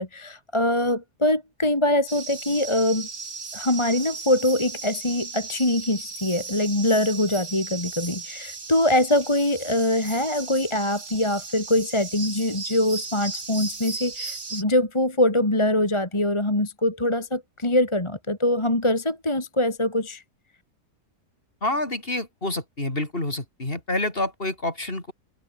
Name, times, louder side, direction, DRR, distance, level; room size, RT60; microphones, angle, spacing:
voice 1, 0.0-3.1 3.5-20.2, left 1 dB, 20° left, 2.5 m, -23 dB
sound 1, 2.1-14.6, right 4 dB, 90° right, 3.8 m, -36 dB
voice 2, 21.6-25.1, left 2 dB, 35° left, 4.4 m, -28 dB
omnidirectional pair, 1.7 m